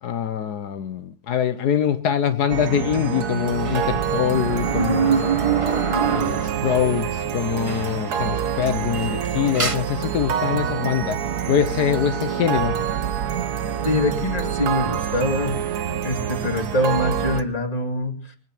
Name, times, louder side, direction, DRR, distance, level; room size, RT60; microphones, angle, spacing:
voice 1, 0.0-5.3 6.1-11.2 11.5-12.8, left 9 dB, 75° left, 1.4 m, -24 dB
sound 1, 2.5-17.4, right 8 dB, 75° right, 1.6 m, -26 dB
sound 2, 3.6-6.8 7.2-7.3 7.7-8.2 8.4-9.7, right 6 dB, 25° right, 0.9 m, -25 dB
voice 2, 13.8-15.6 16.0-18.3, left 1 dB, 25° left, 2.4 m, -24 dB
23.5 x 9.1 x 6.0 m
omnidirectional pair, 1.7 m